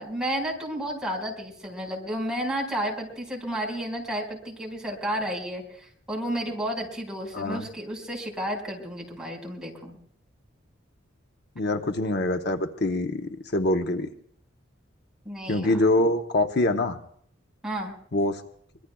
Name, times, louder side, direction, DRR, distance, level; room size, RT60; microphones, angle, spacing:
voice 1, 0.0-9.9 15.2-15.7 17.6-18.0, equal, 5° right, -2 dB, 4.9 m, -32 dB
voice 2, 7.3-7.7 11.6-13.2 13.5-14.1 15.5-17.0 18.1-18.4, left 1 dB, 60° left, 5 dB, 0.9 m, -24 dB
24.5 x 22.0 x 2.3 m, 0.63 s
head